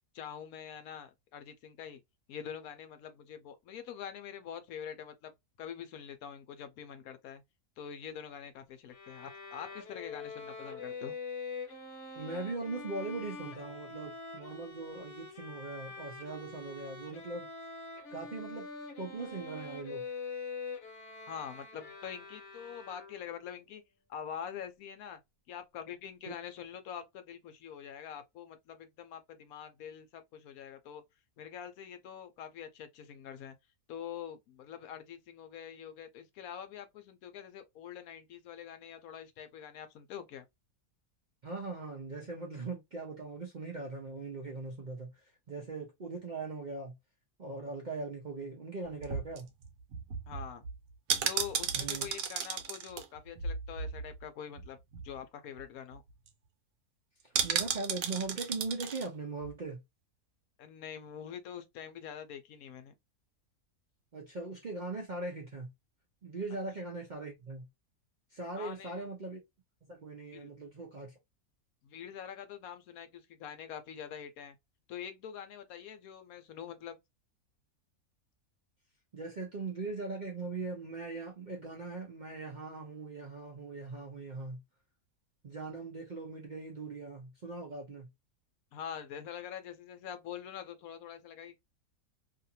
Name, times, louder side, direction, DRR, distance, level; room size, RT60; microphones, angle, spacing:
voice 1, 0.1-2.0 2.3-5.3 5.6-7.4 7.8-11.1 21.3-23.8 24.1-25.2 25.5-31.0 31.4-33.6 33.9-40.4 50.3-50.6 51.2-54.8 55.0-56.0 60.6-62.9 68.6-69.1 70.3-70.5 71.8-74.6 74.9-77.0 88.7-91.6, left 8 dB, 75° left, 1.0 m, -45 dB
Bowed string instrument, 8.9-23.4, left 4 dB, 55° left, 1.1 m, -44 dB
voice 2, 12.2-17.5 18.1-18.7 19.0-20.0 41.4-45.1 45.5-46.9 47.4-49.5 51.7-52.1 57.2-59.8 64.1-65.7 66.2-67.7 68.3-69.4 69.8-71.1 79.1-84.6 85.4-88.1, right 3 dB, 50° right, 0.5 m, -40 dB
sound 1, 48.8-54.3 54.6-54.7 54.9-55.2 55.6-55.7 55.9-56.3 57.3-59.1 59.4-59.5, right 7 dB, 70° right, 1.0 m, -35 dB
2.7 x 2.4 x 2.6 m
omnidirectional pair, 1.6 m